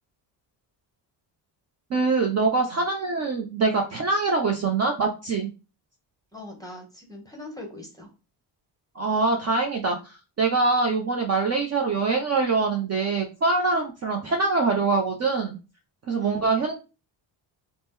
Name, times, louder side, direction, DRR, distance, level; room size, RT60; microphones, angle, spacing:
voice 1, 1.9-5.5 9.0-15.6 16.1-16.8, right 3 dB, 35° right, 2 dB, 0.5 m, -24 dB
voice 2, 6.3-8.1 16.2-16.4, left 1 dB, 10° left, 2 dB, 0.8 m, -41 dB
2.8 x 2.1 x 3.5 m, 0.31 s
cardioid pair, 125°, 47 cm